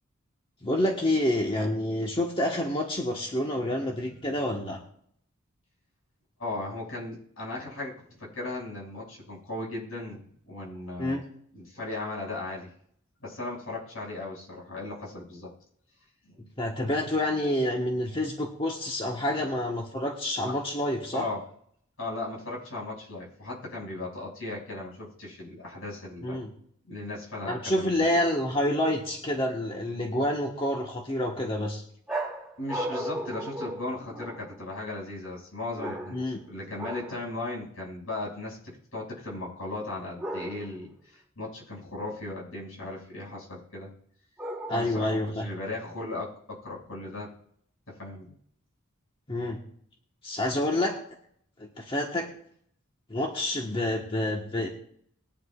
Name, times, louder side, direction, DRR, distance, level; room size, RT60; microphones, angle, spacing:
voice 1, 0.6-4.8 11.0-11.2 16.6-21.3 26.2-26.5 27.5-31.8 36.1-36.4 44.7-45.5 49.3-49.6 50.2-51.0 51.6-52.3 53.1-54.7, left 1 dB, 25° left, 0 dB, 1.4 m, -28 dB
voice 2, 6.4-11.2 11.5-12.7 13.2-15.5 16.2-16.5 21.1-21.4 22.0-26.4 26.8-28.2 32.6-36.2 36.5-43.9 44.7-47.3 47.9-48.3, left 2 dB, 70° left, -3 dB, 6.2 m, -37 dB
sound 1, 32.1-34.6 35.8-36.4 36.8-37.2 40.2-40.9 44.4-45.1, right 1 dB, 5° right, 2.0 m, -36 dB
21.5 x 9.8 x 2.5 m, 0.66 s
head